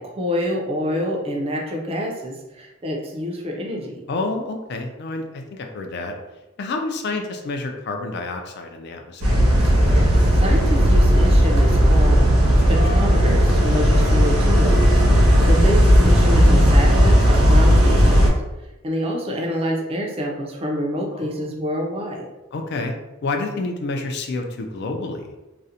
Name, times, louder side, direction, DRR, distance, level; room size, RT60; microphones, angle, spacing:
voice 1, 0.0-4.0 10.0-12.4 12.7-18.3 18.8-22.2, equal, 30° right, 0 dB, 0.4 m, -27 dB
voice 2, 4.1-6.2 6.6-9.5 17.7-18.0 21.1-21.5 22.5-22.9 23.2-25.3, left 3 dB, 50° left, 4 dB, 0.3 m, -29 dB
sound 1, 9.2-18.3, equal, 85° right, 0.9 m, -15 dB
2.4 x 2.0 x 2.7 m, 1.0 s
head